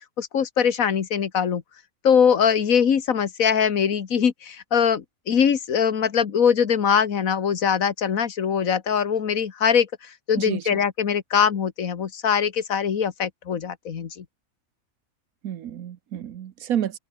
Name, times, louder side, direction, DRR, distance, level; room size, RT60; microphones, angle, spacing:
voice 1, 0.2-1.6 2.0-14.3, left 7 dB, 75° left, 1.8 m, -22 dB
voice 2, 10.4-10.8 15.4-17.0, right 10 dB, 80° right, 1.4 m, -30 dB
open air
omnidirectional pair, 1.5 m